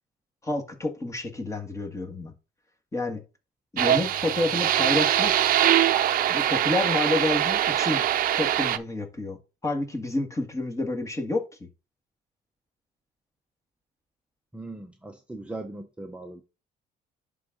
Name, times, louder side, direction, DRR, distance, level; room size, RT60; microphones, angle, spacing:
voice 1, 0.4-2.3 2.9-3.2 3.7-5.4 6.3-8.0 8.4-9.4 9.6-11.4, left 2 dB, 20° left, 1.7 m, -29 dB
sound 1, 3.8-8.8, right 11 dB, 55° right, 0.6 m, -23 dB
voice 2, 14.5-16.4, right 2 dB, 5° right, 0.8 m, -39 dB
11.0 x 3.8 x 3.9 m
cardioid pair, 110°, 17 cm